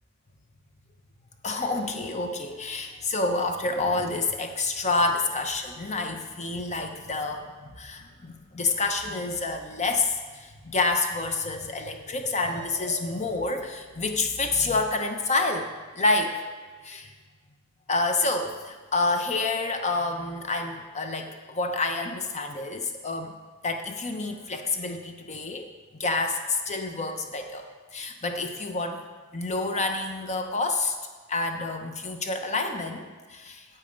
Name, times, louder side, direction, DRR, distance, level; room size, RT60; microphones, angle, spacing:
voice 1, 1.4-15.7 15.9-16.5 16.8-17.1 17.9-23.3 23.6-25.7 26.0-27.7 27.9-29.0 29.3-31.0 31.3-33.7, left 3 dB, 30° left, 5 dB, 0.8 m, -28 dB
8.7 x 8.2 x 5.2 m, 1.4 s
head